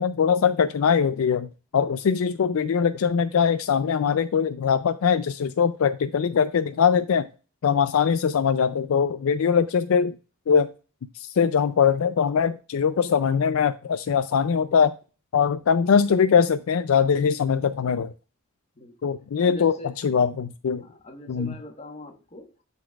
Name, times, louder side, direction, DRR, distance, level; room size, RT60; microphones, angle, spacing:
voice 1, 0.0-7.3 7.6-10.2 10.5-10.7 11.1-14.9 15.3-18.1 19.0-20.8 21.3-21.5, left 6 dB, 65° left, 0.4 m, -22 dB
voice 2, 18.8-19.2 19.4-20.0 20.8-22.6, left 1 dB, 30° left, 1.3 m, -42 dB
12.0 x 4.1 x 2.3 m
head